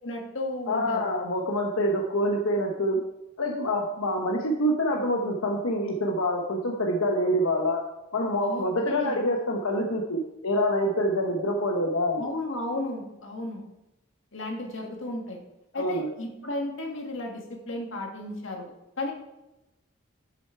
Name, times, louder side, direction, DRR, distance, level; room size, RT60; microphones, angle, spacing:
voice 1, 0.0-1.1 8.4-9.2 12.2-13.6 14.3-15.4 15.7-19.1, left 1 dB, 65° left, 1 dB, 1.9 m, -34 dB
voice 2, 0.7-3.0 3.4-7.8 8.1-12.3 15.7-16.1, equal, 90° left, 1 dB, 1.1 m, -26 dB
8.0 x 8.0 x 4.5 m, 0.93 s
head